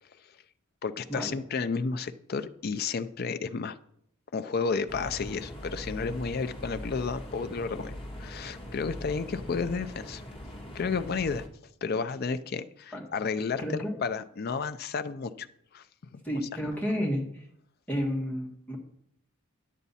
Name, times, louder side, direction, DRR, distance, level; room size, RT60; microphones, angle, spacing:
voice 1, 0.8-3.8 4.3-7.9 8.2-10.2 10.7-11.4 11.8-13.6 14.0-15.5 15.7-15.8 16.1-16.2, left 5 dB, 45° left, 10 dB, 0.4 m, -32 dB
sound 1, 4.9-11.5, equal, 25° left, 1.4 m, -41 dB
voice 2, 13.6-14.0 16.2-17.4 17.9-18.8, equal, 5° left, -1 dB, 1.7 m, -31 dB
10.0 x 8.2 x 4.1 m, 0.71 s
head